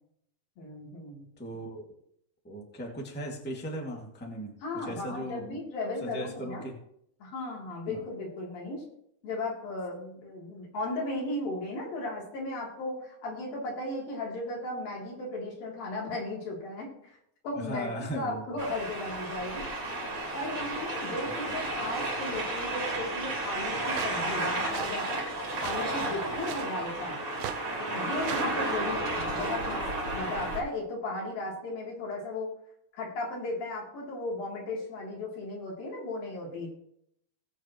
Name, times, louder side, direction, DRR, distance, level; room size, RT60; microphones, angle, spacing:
voice 1, 0.6-1.3 4.6-6.6 7.2-8.8 9.2-16.9 17.4-19.7 20.3-27.2 27.9-29.9 30.1-32.5 33.0-36.7, left 2 dB, 80° left, -3 dB, 4.9 m, -36 dB
voice 2, 1.4-1.9 2.4-4.5 4.8-5.6 6.0-6.8 7.9-8.0 17.5-18.4 21.2-21.6, equal, 5° left, -1 dB, 1.3 m, -37 dB
sound 1, 18.6-30.6, right 2 dB, 50° right, 4.4 m, -32 dB
sound 2, 23.8-24.2 24.6-25.0 25.5-25.8 26.4-26.8 27.3-27.6 28.2-28.6, right 10 dB, 80° right, 2.4 m, -39 dB
20.0 x 7.9 x 3.1 m, 0.71 s
omnidirectional pair, 4.0 m